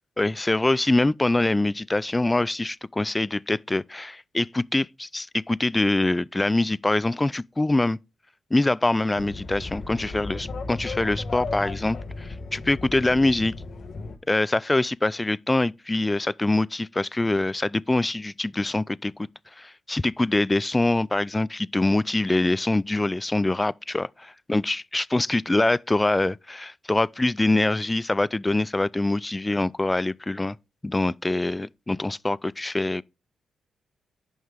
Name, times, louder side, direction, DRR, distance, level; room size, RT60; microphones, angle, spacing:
voice 1, 0.2-8.0 8.5-13.5 14.3-19.3 19.6-30.6 30.8-33.0, left 2 dB, 20° left, 0.3 m, -24 dB
sound 1, 9.1-14.2, left 3 dB, 60° left, 1.2 m, -35 dB
9.3 x 5.5 x 3.5 m
hypercardioid pair, 45°, 0 cm